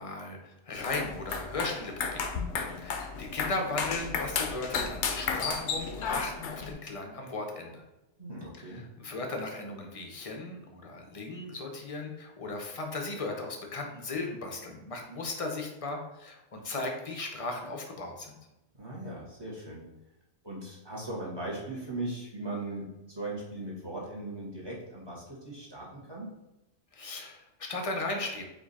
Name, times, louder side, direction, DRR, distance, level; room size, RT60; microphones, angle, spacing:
voice 1, 0.0-2.3 2.8-7.8 8.6-18.4 26.9-28.4, left 2 dB, 35° left, 2 dB, 0.6 m, -36 dB
sound 1, 0.7-6.7, left 5 dB, 75° left, 0.9 m, -33 dB
voice 2, 8.2-8.8 18.8-19.8 20.4-26.3, right 2 dB, 20° right, -5 dB, 1.2 m, -38 dB
4.8 x 2.6 x 4.0 m, 0.94 s
omnidirectional pair, 1.2 m